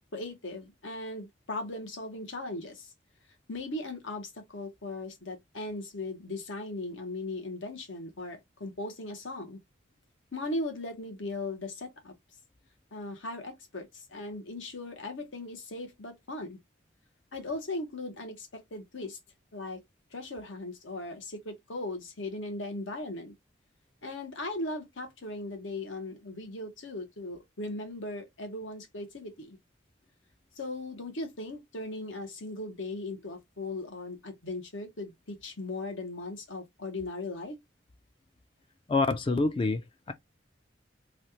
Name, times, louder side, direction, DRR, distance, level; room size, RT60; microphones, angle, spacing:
voice 1, 0.1-2.9 3.5-9.6 10.3-12.1 12.9-16.6 17.3-19.2 19.5-19.8 20.1-23.3 24.0-29.6 30.6-37.6, left 2 dB, 85° left, 1.1 m, -38 dB
voice 2, 38.9-40.1, left 3 dB, 25° left, 0.3 m, -27 dB
3.2 x 2.3 x 2.7 m
head